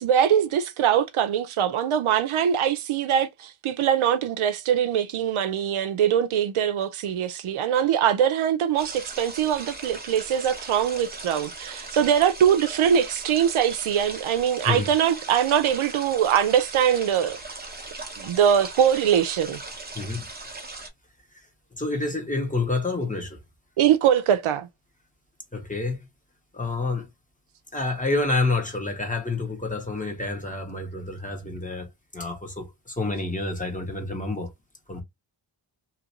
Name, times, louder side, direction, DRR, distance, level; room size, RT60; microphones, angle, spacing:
voice 1, 0.0-17.4 18.2-19.6 23.8-24.7, right 9 dB, 80° right, 0.6 m, -22 dB
sound 1, 8.8-20.9, right 2 dB, 20° right, 0.8 m, -39 dB
voice 2, 19.9-20.3 21.7-23.4 25.5-26.0 26.5-27.1 27.7-34.5 34.9-35.0, left 3 dB, 15° left, 1.1 m, -28 dB
2.9 x 2.5 x 2.9 m
wide cardioid pair, 85°, 48 cm